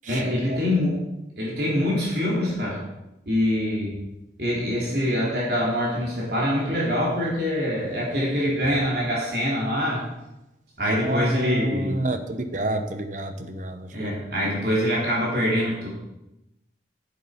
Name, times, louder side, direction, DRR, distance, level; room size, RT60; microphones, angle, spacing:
voice 1, 0.1-1.0 1.4-2.8 3.3-4.0 4.4-10.0 10.8-12.0 13.9-15.9, equal, 60° right, -5 dB, 3.5 m, -24 dB
voice 2, 10.8-14.1, right 1 dB, 45° right, 8 dB, 0.9 m, -29 dB
8.6 x 8.0 x 5.1 m, 0.93 s
head